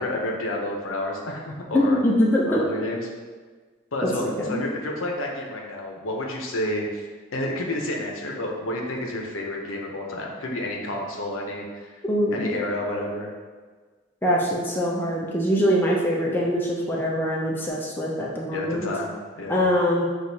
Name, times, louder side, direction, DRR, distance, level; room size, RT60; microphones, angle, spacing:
voice 1, 0.0-2.0 2.4-3.1 3.9-7.0 7.3-11.9 12.3-13.3 18.5-19.6, left 1 dB, 90° left, 0 dB, 0.7 m, -30 dB
voice 2, 1.7-2.6 4.0-4.6 12.0-12.5 14.2-18.9 19.5-20.1, equal, 10° left, -4 dB, 0.4 m, -23 dB
6.1 x 2.4 x 2.7 m, 1.4 s
head